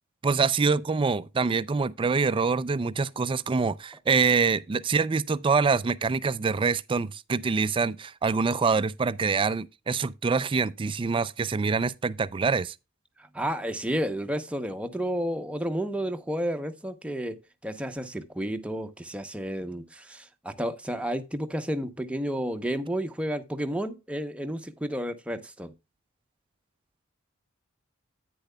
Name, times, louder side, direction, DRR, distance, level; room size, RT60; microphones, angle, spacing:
voice 1, 0.2-12.7, right 4 dB, 25° right, 0.4 m, -25 dB
voice 2, 13.3-25.7, equal, 5° right, 0.7 m, -31 dB
10.0 x 9.1 x 2.2 m
head